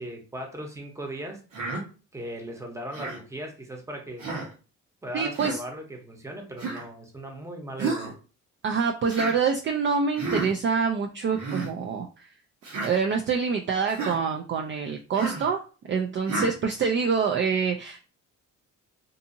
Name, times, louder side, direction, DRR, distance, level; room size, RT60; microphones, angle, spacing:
voice 1, 0.0-1.4 2.1-4.3 5.0-8.1, right 1 dB, 10° right, 2 dB, 0.8 m, -38 dB
Human voice, 1.5-1.8 2.9-3.2 4.2-4.5 5.3-5.6 6.6-6.9 7.8-8.1 9.1-9.4 10.2-10.5 11.3-11.7 12.6-12.9 13.9-14.2 15.2-15.5 16.3-16.5, right 3 dB, 80° right, 1.1 m, -31 dB
voice 2, 5.1-5.6 8.6-12.3 12.8-15.6 15.9-18.0, right 5 dB, 40° right, 3 dB, 0.4 m, -26 dB
2.6 x 2.6 x 2.6 m, 0.35 s
cardioid pair, 90°, 30 cm